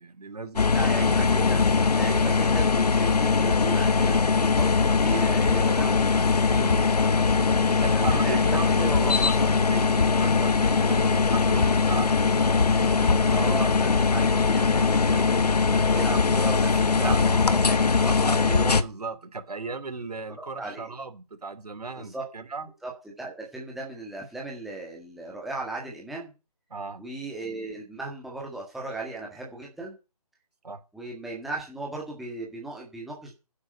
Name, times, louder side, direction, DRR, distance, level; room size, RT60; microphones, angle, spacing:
voice 1, 0.0-0.7 6.5-6.9 7.8-13.5 15.7-15.8 16.1-16.2 17.0-17.2 18.2-22.7 26.7-27.0 30.6-30.8, right 4 dB, 75° right, 11 dB, 2.9 m, -36 dB
sound 1, 0.6-18.8, left 4 dB, 75° left, 1.3 m, -21 dB
voice 2, 0.7-6.0 7.9-8.5 8.8-9.5 13.3-18.2 20.4-20.9 22.0-22.2 22.8-22.9 23.2-26.3 27.0-30.0 30.9-33.4, right 2 dB, ahead, -2 dB, 1.7 m, -36 dB
10.5 x 8.5 x 7.7 m, 0.31 s
figure-of-eight pair, 165°, 20 cm